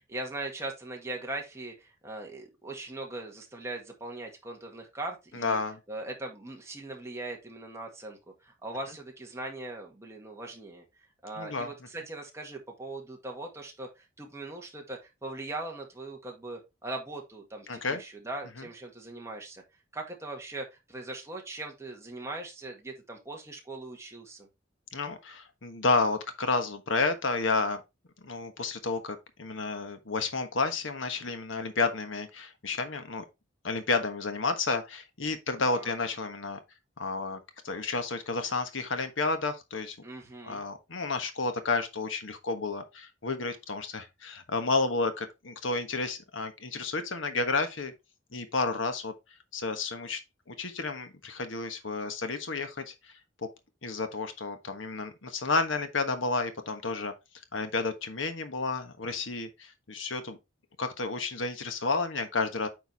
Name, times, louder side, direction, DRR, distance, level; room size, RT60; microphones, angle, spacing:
voice 1, 0.1-5.6 5.9-10.8 11.2-13.9 14.2-19.6 19.9-24.5 35.7-35.9 40.0-40.6, right 2 dB, 15° right, 1.9 m, -40 dB
voice 2, 5.3-5.8 11.4-11.7 17.7-18.0 18.6-18.7 24.9-27.8 28.2-33.2 33.6-36.6 37.0-40.0 40.4-47.9 48.3-49.1 49.5-50.2 50.5-52.9 53.8-57.1 57.5-60.4 60.8-62.7, left 3 dB, 85° left, 1.3 m, -31 dB
8.9 x 4.6 x 3.4 m
head